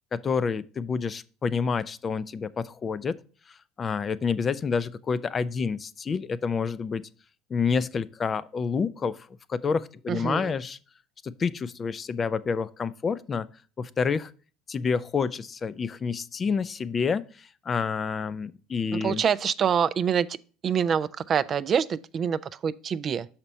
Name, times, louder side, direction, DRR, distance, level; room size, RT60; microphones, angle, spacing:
voice 1, 0.1-3.2 3.8-7.0 7.5-10.8 11.2-13.5 13.8-14.3 14.7-19.2, left 5 dB, 35° left, 0.4 m, -28 dB
voice 2, 10.1-10.5 18.9-20.3 20.6-23.3, right 7 dB, 40° right, 0.3 m, -26 dB
5.9 x 4.3 x 5.2 m
supercardioid pair, 85°, 0 cm